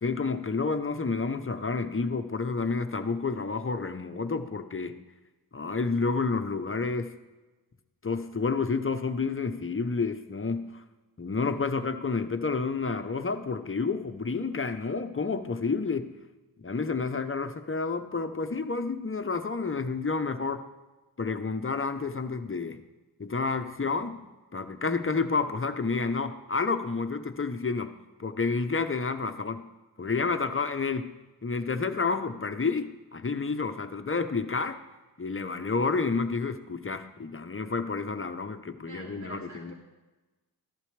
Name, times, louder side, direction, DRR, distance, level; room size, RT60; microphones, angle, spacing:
voice 1, 0.0-5.0 5.5-7.1 8.0-10.8 11.2-16.1 16.6-20.6 21.2-22.8 23.2-24.2 24.5-27.9 28.2-29.7 30.0-31.1 31.4-34.8 35.2-39.7, left 4 dB, 30° left, 8 dB, 0.8 m, -30 dB
voice 2, 38.8-39.7, right 2 dB, 45° right, -6 dB, 3.3 m, -46 dB
14.5 x 11.0 x 3.4 m, 1.2 s
cardioid pair, 60°, 40 cm